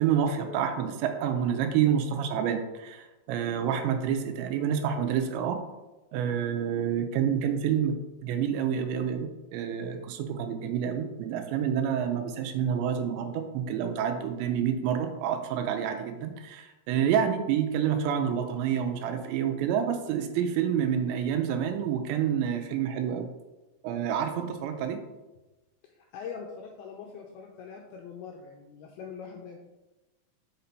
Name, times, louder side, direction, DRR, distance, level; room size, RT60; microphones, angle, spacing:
voice 1, 0.0-5.6 6.1-23.3 23.8-25.0, right 8 dB, 85° right, 6 dB, 2.9 m, -28 dB
voice 2, 25.8-29.6, left 6 dB, 90° left, 1 dB, 2.2 m, -42 dB
5.8 x 5.8 x 5.4 m, 1.1 s
omnidirectional pair, 5.2 m